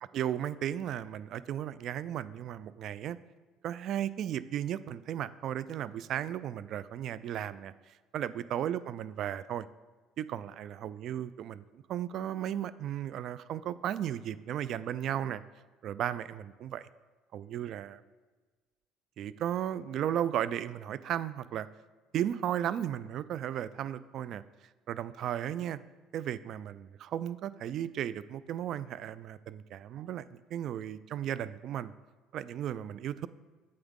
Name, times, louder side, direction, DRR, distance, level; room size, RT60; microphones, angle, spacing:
voice 1, 0.1-3.2 3.6-9.7 10.2-15.4 15.8-16.9 17.3-18.0 19.2-21.7 22.1-24.4 24.9-25.8 26.1-31.9 32.3-33.3, right 10 dB, 60° right, 16 dB, 0.3 m, -35 dB
7.8 x 7.2 x 3.7 m, 1.3 s
supercardioid pair, 80°, 0 cm